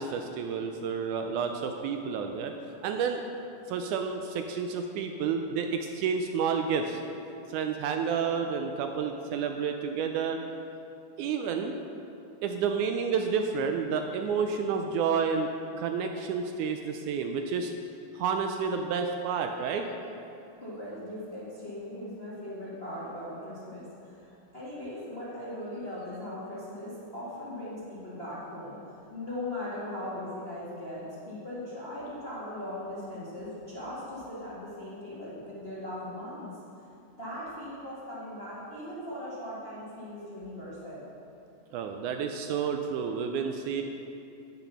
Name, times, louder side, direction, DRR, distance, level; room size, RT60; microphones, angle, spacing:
voice 1, 0.0-2.5 2.8-3.2 3.7-7.0 7.5-10.4 11.2-11.8 12.4-15.5 15.8-17.7 18.2-19.9 41.7-43.8, right 6 dB, 80° right, 5 dB, 1.9 m, -30 dB
voice 2, 20.6-28.8 29.1-36.5 37.2-41.1, left 1 dB, 25° left, -9 dB, 1.4 m, -39 dB
9.0 x 7.9 x 5.6 m, 2.7 s
omnidirectional pair, 3.7 m